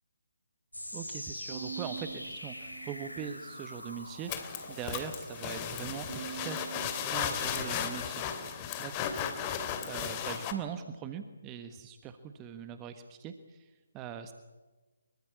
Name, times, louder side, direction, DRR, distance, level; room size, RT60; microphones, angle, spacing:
sound 1, 0.7-7.8, left 1 dB, 85° left, 6.0 m, -44 dB
voice 1, 0.9-9.1 9.9-14.3, right 8 dB, 20° right, 9 dB, 1.4 m, -42 dB
Bowed string instrument, 1.5-3.9 4.3-5.1 6.1-8.6, right 8 dB, 45° right, 4.2 m, -46 dB
sound 2, 4.3-10.5, left 8 dB, 25° left, 2.9 m, -35 dB
25.5 x 23.0 x 8.4 m, 1.3 s
figure-of-eight pair, 145°, 0 cm